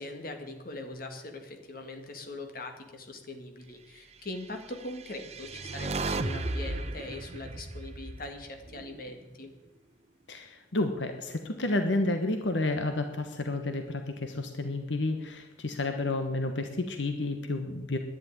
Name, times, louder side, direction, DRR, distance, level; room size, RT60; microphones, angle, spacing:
voice 1, 0.0-9.5, left 2 dB, 50° left, 5 dB, 2.0 m, -41 dB
sound 1, 4.8-9.1, right 2 dB, 35° right, 0.8 m, -35 dB
voice 2, 10.3-18.0, left 2 dB, 85° left, 6 dB, 1.2 m, -30 dB
11.0 x 9.8 x 9.8 m, 1.1 s
head